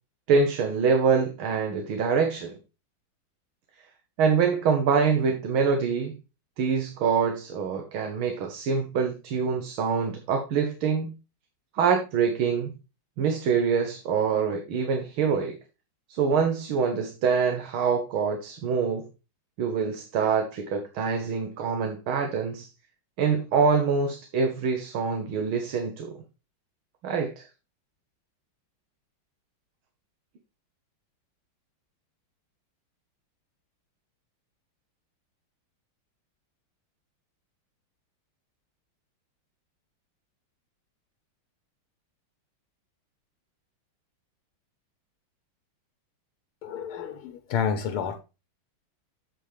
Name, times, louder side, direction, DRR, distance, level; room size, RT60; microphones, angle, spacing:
voice 1, 0.3-2.6 4.2-6.2 6.6-11.1 11.8-12.7 13.2-15.6 16.1-19.1 19.6-22.7 23.2-26.2 27.0-27.5, right 5 dB, 75° right, 2.0 m, -25 dB
voice 2, 46.6-48.2, left 7 dB, 85° left, 1.8 m, -29 dB
8.2 x 8.1 x 3.2 m
omnidirectional pair, 2.3 m